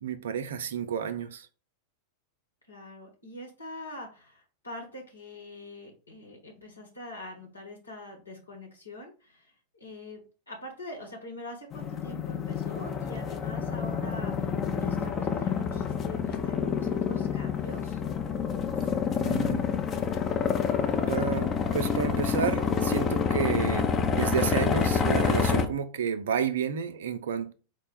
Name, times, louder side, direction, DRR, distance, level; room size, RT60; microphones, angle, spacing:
voice 1, 0.0-1.5 19.2-19.6 21.1-27.5, right 7 dB, 60° right, 0.4 m, -31 dB
voice 2, 2.7-9.5 9.8-10.2 10.5-18.0, left 1 dB, 80° left, 1.4 m, -44 dB
sound 1, 11.7-25.7, left 6 dB, 25° left, 0.5 m, -28 dB
4.1 x 2.2 x 4.4 m
figure-of-eight pair, 90°, 0 cm